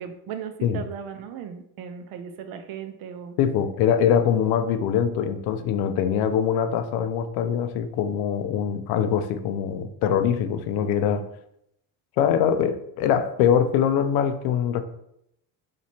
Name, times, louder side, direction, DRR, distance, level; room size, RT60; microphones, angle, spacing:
voice 1, 0.0-3.4, right 7 dB, 65° right, 8 dB, 0.6 m, -37 dB
voice 2, 3.4-11.3 12.2-14.8, left 8 dB, 80° left, 10 dB, 0.5 m, -23 dB
3.0 x 2.8 x 4.3 m, 0.76 s
cardioid pair, 140°, 38 cm